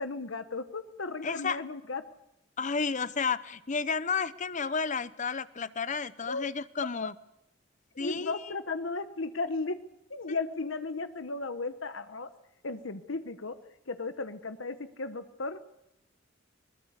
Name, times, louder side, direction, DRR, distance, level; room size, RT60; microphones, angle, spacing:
voice 1, 0.0-2.0 6.3-6.4 8.0-9.8 10.1-12.3 12.6-13.6 13.9-15.6, left 3 dB, 80° left, 10 dB, 1.2 m, -35 dB
voice 2, 1.2-1.6 2.6-7.1 8.0-8.5 10.3-10.4, left 5 dB, 40° left, 15 dB, 0.8 m, -32 dB
22.0 x 20.5 x 8.2 m, 0.85 s
head